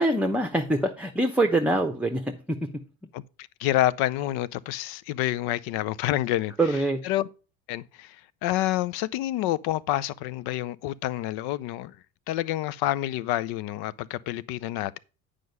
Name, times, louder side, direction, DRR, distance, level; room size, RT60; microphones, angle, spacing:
voice 1, 0.0-2.7 6.6-7.0, right 1 dB, 5° right, 0.9 m, -24 dB
voice 2, 3.1-6.5 7.0-7.3 7.7-8.2 8.4-12.0 12.3-15.0, left 14 dB, 60° left, 0.6 m, -28 dB
9.3 x 5.0 x 5.4 m
hypercardioid pair, 65°, 43 cm